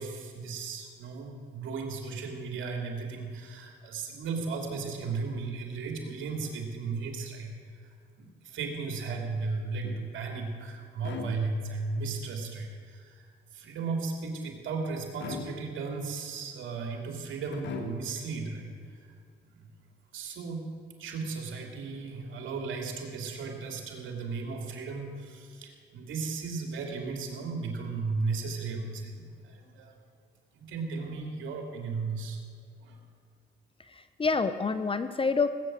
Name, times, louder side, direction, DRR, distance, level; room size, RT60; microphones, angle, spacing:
voice 1, 0.0-7.5 7.8-19.1 19.5-19.7 20.1-20.6 21.0-29.9 30.5-32.4 32.8-33.0, right 4 dB, 75° right, 2 dB, 2.9 m, -35 dB
sound 1, 9.8-10.4 11.0-11.9 15.2-16.0 17.5-18.3, left 4 dB, 65° left, 1.8 m, -41 dB
voice 2, 33.8-35.5, left 4 dB, 25° left, 11 dB, 0.8 m, -28 dB
18.5 x 9.1 x 7.6 m, 2.1 s
cardioid pair, 90°, 20 cm